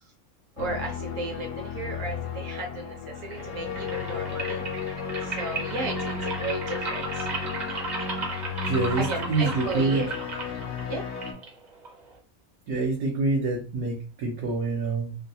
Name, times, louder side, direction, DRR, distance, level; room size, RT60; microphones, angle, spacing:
sound 1, 0.6-11.3, left 6 dB, 65° left, 0.9 m, -34 dB
voice 1, 0.6-4.6 5.2-7.3 9.0-10.1 10.9-11.0, right 3 dB, 60° right, 2 dB, 1.1 m, -34 dB
sound 2, 3.2-12.2, right 2 dB, 40° right, 0.7 m, -36 dB
voice 2, 8.6-10.0 12.7-15.2, right 3 dB, 80° right, -2 dB, 1.2 m, -26 dB
3.1 x 2.6 x 2.7 m, 0.35 s
omnidirectional pair, 1.5 m